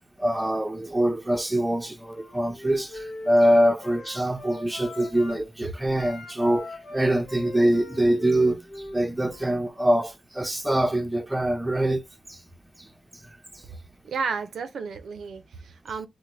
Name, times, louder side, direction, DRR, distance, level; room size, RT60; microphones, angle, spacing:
voice 1, 0.2-8.6 8.9-12.0 12.3-12.4, right 1 dB, 15° right, 0.6 m, -24 dB
Wind instrument woodwind instrument, 2.1-5.4 5.9-9.6, left 2 dB, 80° left, 0.8 m, -41 dB
voice 2, 14.0-16.1, right 5 dB, 80° right, 0.5 m, -32 dB
3.3 x 2.1 x 3.0 m
cardioid pair, 50°, 0 cm